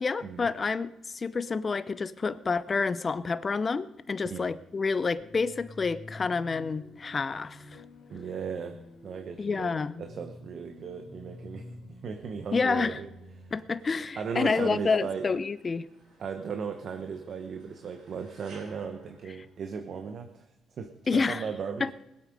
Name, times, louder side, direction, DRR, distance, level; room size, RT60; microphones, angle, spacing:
voice 1, 0.0-7.8 9.4-9.9 12.5-13.0 13.5-15.9 21.1-21.4 21.8-21.9, left 4 dB, 35° left, 15 dB, 0.7 m, -29 dB
sound 1, 5.2-15.1, left 2 dB, 75° left, 3.7 m, -49 dB
voice 2, 8.1-8.8 9.0-9.7 10.0-11.6 12.0-13.1 14.2-15.2 16.2-20.4 20.8-21.8, right 6 dB, 60° right, 7 dB, 1.1 m, -36 dB
sound 2, 13.8-20.1, right 2 dB, 85° right, 5.0 m, -58 dB
20.5 x 8.4 x 5.3 m, 0.92 s
cardioid pair, 90°, 0 cm